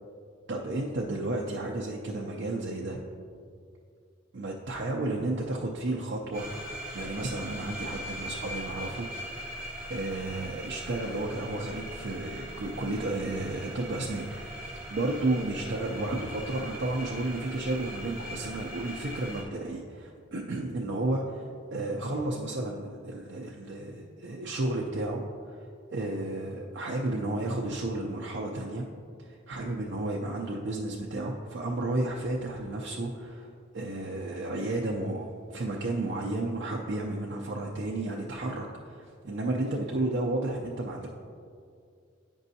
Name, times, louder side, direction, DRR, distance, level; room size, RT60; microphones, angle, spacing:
voice 1, 0.5-3.0 4.3-6.5 6.9-9.1 9.9-14.5 14.9-25.2 25.5-25.6 25.9-28.9 29.2-33.5 33.7-41.1, right 2 dB, 60° right, -2 dB, 0.5 m, -32 dB
sound 1, 6.3-19.4, equal, 15° right, 1.6 m, -40 dB
9.0 x 5.3 x 2.7 m, 2.3 s
head